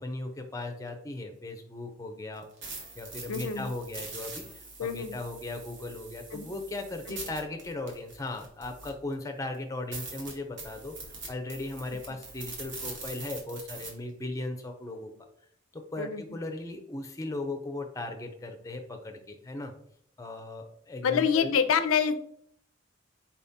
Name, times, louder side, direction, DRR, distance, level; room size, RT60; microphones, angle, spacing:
voice 1, 0.0-2.5 3.0-10.9 11.3-15.1 15.7-19.7 20.2-21.5, left 2 dB, 15° left, 5 dB, 0.4 m, -37 dB
sound 1, 2.4-9.1 9.5-9.6 9.9-13.9, right 3 dB, 60° right, 1.0 m, -43 dB
voice 2, 3.3-3.7 4.8-5.2 6.3-6.5 16.0-16.2 21.0-22.2, left 7 dB, 80° left, 10 dB, 0.4 m, -26 dB
4.2 x 3.5 x 2.7 m, 0.68 s
head